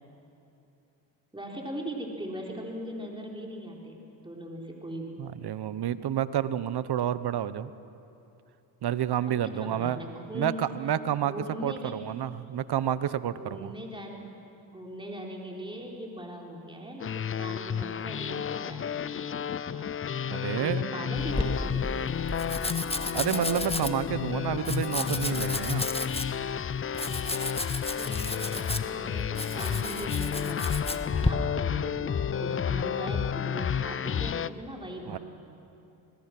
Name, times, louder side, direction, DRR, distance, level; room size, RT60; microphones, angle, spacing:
voice 1, 1.3-5.2 9.4-10.7 11.3-12.1 13.4-14.3 14.7-18.9 19.7-20.0 20.6-22.0 27.9-35.2, equal, 10° right, -1 dB, 4.2 m, -40 dB
voice 2, 5.2-7.7 8.8-10.0 10.3-13.7 20.3-20.8 23.1-25.9 35.1-35.2, right 10 dB, 50° right, 15 dB, 1.1 m, -29 dB
sound 1, 17.0-34.5, left 8 dB, 30° left, 0.5 m, -31 dB
Domestic sounds home sounds, 21.1-31.3, left 2 dB, 10° left, 1.6 m, -34 dB
27.5 x 20.5 x 6.1 m, 2.8 s
supercardioid pair, 60°, 48 cm